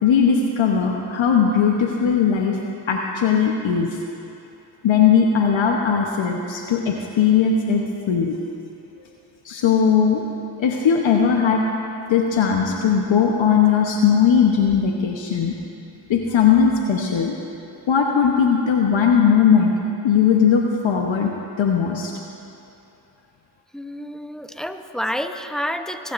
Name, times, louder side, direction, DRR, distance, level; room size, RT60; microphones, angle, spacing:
voice 1, 0.0-2.6 2.9-3.9 4.8-8.4 9.4-10.2 10.6-11.6 12.1-15.5 16.1-17.3 17.9-19.7 20.0-22.1, left 7 dB, 70° left, 1 dB, 1.0 m, -18 dB
voice 2, 23.7-26.1, equal, ahead, 7 dB, 0.8 m, -29 dB
19.0 x 10.0 x 2.6 m, 2.8 s
supercardioid pair, 45°, 48 cm